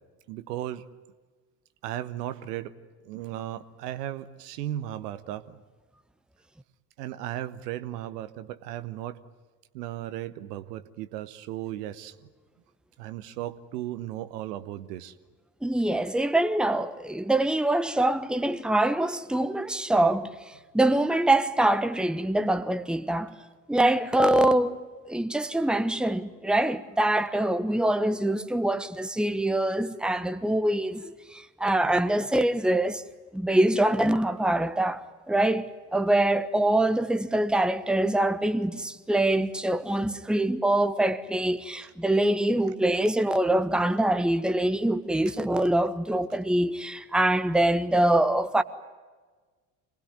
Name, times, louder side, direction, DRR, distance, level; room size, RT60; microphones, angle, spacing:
voice 1, 0.3-0.8 1.8-2.7 3.0-5.6 7.0-9.2 9.7-12.3 13.0-15.1, right 13 dB, 70° right, 1.1 m, -36 dB
voice 2, 15.6-20.3 20.7-23.3 23.7-24.8 25.1-33.0 33.3-48.6, right 1 dB, ahead, 1.2 m, -24 dB
26.0 x 19.0 x 9.6 m
figure-of-eight pair, 55°, 50 cm